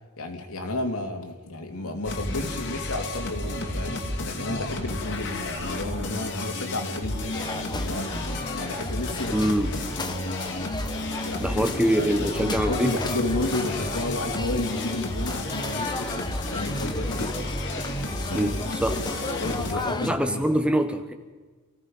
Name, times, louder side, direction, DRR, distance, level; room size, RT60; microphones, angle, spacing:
voice 1, 0.2-9.4 9.9-10.3 11.2-11.7 12.0-16.3 16.5-17.4 18.3-18.6 19.4-20.4, left 2 dB, 75° left, 3 dB, 2.8 m, -32 dB
sound 1, 2.0-19.7, left 1 dB, 55° left, 2.5 m, -32 dB
sound 2, 7.3-20.1, left 2 dB, 20° left, 1.2 m, -35 dB
voice 2, 9.3-9.7 11.4-12.9 18.3-18.9 20.0-21.1, equal, 5° right, 7 dB, 1.1 m, -24 dB
28.5 x 16.5 x 5.5 m, 1.3 s
head